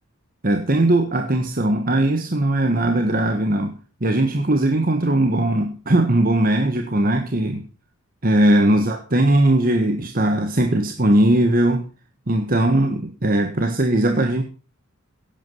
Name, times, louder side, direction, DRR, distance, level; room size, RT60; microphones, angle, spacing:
voice 1, 0.4-3.7 4.0-7.6 8.2-11.8 12.3-14.4, right 1 dB, 45° right, 5 dB, 1.5 m, -19 dB
16.5 x 9.1 x 5.6 m, 0.36 s
head